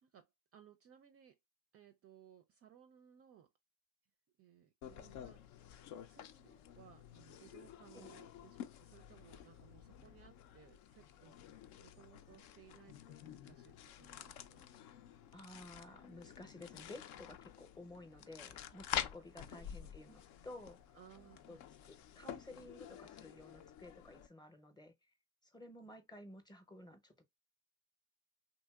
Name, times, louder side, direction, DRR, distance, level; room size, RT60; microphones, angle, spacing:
voice 1, 0.0-1.4 1.7-3.5 4.4-5.4 5.9-11.4 11.8-14.6 19.5-20.0 20.9-21.6, right 9 dB, 35° right, 0.4 m, -62 dB
sound 1, 4.8-24.3, left 10 dB, 60° left, 0.5 m, -49 dB
voice 2, 15.3-21.0 21.5-21.6 21.8-24.9 25.4-27.1, left 1 dB, 10° left, 0.7 m, -54 dB
2.9 x 2.8 x 2.3 m
supercardioid pair, 80°, 42 cm